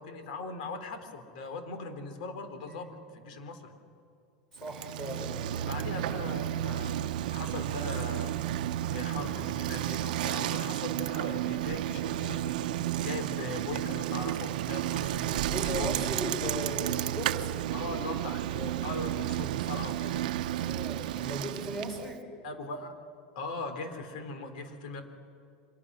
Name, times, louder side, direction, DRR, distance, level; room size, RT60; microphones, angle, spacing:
voice 1, 0.0-3.7 5.7-8.4 8.9-12.6 13.0-16.0 17.7-20.2 22.4-23.0 23.4-25.0, left 3 dB, 80° left, 8 dB, 3.8 m, -40 dB
voice 2, 4.5-5.6 15.5-17.6 20.5-22.3, equal, 10° left, 2 dB, 5.4 m, -37 dB
Bicycle, 4.6-22.1, right 13 dB, 85° right, 0.8 m, -32 dB
29.0 x 25.0 x 6.4 m, 2.3 s
supercardioid pair, 155°, 4 cm